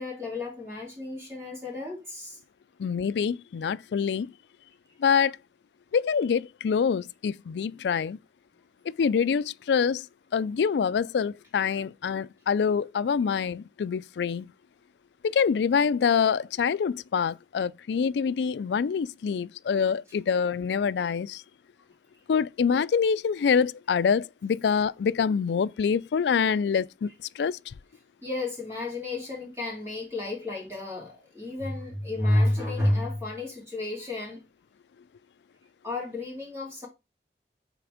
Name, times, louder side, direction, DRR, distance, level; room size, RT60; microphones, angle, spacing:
voice 1, 0.0-2.4 28.2-34.4 35.8-36.9, left 1 dB, 15° right, 3.3 m, -31 dB
voice 2, 2.8-4.3 5.0-5.4 5.9-8.2 8.9-10.1 10.3-14.5 15.2-21.4 22.3-27.6, left 6 dB, 80° left, 0.3 m, -25 dB
6.0 x 4.3 x 4.9 m
head